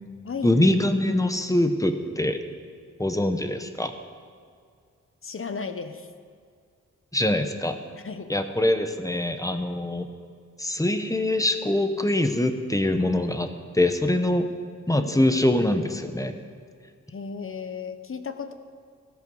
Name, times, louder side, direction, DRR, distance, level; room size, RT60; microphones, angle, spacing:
voice 1, 0.4-2.4 3.0-3.9 7.1-7.8 8.3-10.1 10.6-14.5 14.9-16.4, left 1 dB, 10° left, 7 dB, 0.9 m, -23 dB
voice 2, 5.2-6.1 8.0-8.3 14.9-15.3 17.1-18.5, left 5 dB, 45° left, 9 dB, 0.9 m, -35 dB
14.0 x 13.0 x 5.4 m, 2.2 s
wide cardioid pair, 110°, 31 cm